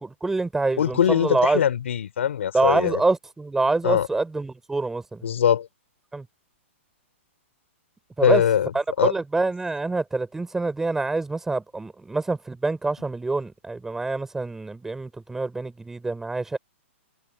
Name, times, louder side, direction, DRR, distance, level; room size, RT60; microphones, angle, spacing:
voice 1, 0.0-1.6 2.5-5.2 6.1-6.3 8.2-8.4 8.7-16.6, right 3 dB, 5° right, 3.9 m, -26 dB
voice 2, 0.8-3.0 3.8-4.1 5.2-5.7 8.2-8.7 9.0-9.1, left 9 dB, 70° left, 4.1 m, -21 dB
hypercardioid pair, 155°, 7 cm